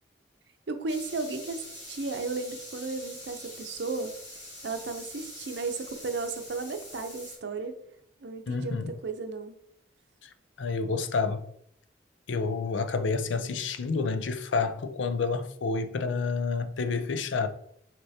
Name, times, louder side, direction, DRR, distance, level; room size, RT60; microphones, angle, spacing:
voice 1, 0.7-4.1 4.6-7.8 8.2-9.6, right 3 dB, 70° right, 0.6 m, -34 dB
sound 1, 0.9-7.4, left 1 dB, 35° left, 1.8 m, -44 dB
voice 2, 8.5-8.9 10.2-11.4 12.3-17.5, left 4 dB, 85° left, 0.5 m, -29 dB
6.3 x 3.0 x 2.8 m
head